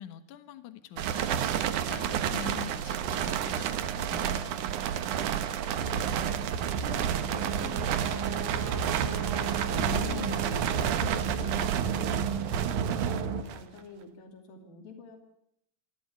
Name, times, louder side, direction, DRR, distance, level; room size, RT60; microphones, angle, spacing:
voice 1, 0.0-4.4 9.8-10.4, left 11 dB, 65° left, 10 dB, 2.6 m, -43 dB
sound 1, 1.0-13.8, right 9 dB, 65° right, 2.4 m, -31 dB
voice 2, 4.9-9.1 9.7-15.2, left 5 dB, 90° left, 4 dB, 4.5 m, -48 dB
sound 2, 5.8-13.4, right 6 dB, 85° right, 3.2 m, -33 dB
Brass instrument, 6.8-11.3, right 4 dB, 10° right, 5.7 m, -43 dB
29.0 x 12.0 x 8.6 m, 0.77 s
omnidirectional pair, 4.1 m